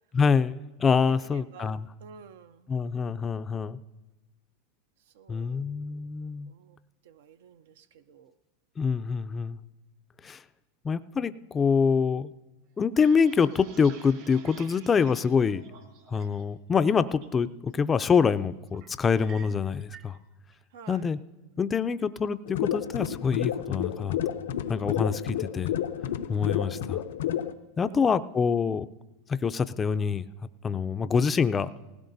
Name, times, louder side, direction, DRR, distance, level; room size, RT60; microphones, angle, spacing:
voice 1, 0.1-1.9 2.7-3.8 5.3-6.5 8.8-9.6 10.2-10.4 10.8-12.3 12.8-15.6 16.1-20.2 20.9-21.2 21.6-24.2 24.7-25.7 26.3-27.0 27.8-28.9 29.3-30.3 30.6-31.7, left 6 dB, 20° left, 13 dB, 0.3 m, -25 dB
voice 2, 1.2-1.7 2.0-2.7 5.0-5.8 6.5-6.8 7.0-8.3 20.7-21.1 27.8-28.3, right 6 dB, 80° right, 11 dB, 0.4 m, -51 dB
sound 1, 12.8-16.4 16.8-17.3 17.7-18.1 18.4-19.6 19.9-20.2 20.5-21.0, right 6 dB, 65° right, 2.7 m, -51 dB
sound 2, 19.1-20.2, right 8 dB, 35° right, 0.7 m, -50 dB
sound 3, 22.5-27.5, left 10 dB, 80° left, 0.5 m, -31 dB
19.0 x 16.5 x 2.6 m, 1.1 s
supercardioid pair, 125°, 0 cm